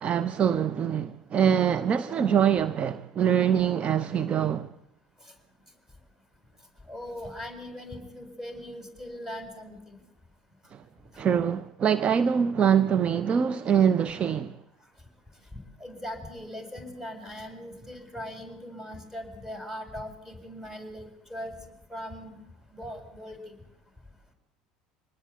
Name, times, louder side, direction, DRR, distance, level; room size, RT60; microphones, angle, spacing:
voice 1, 0.0-4.7 10.7-10.8 11.2-14.6, right 8 dB, 35° right, 0.8 m, -24 dB
voice 2, 6.9-10.0 11.1-11.2 15.8-21.6 21.9-22.3 22.7-23.5, equal, 10° right, 7.3 m, -40 dB
25.5 x 19.5 x 8.4 m
figure-of-eight pair, 65°, 3 cm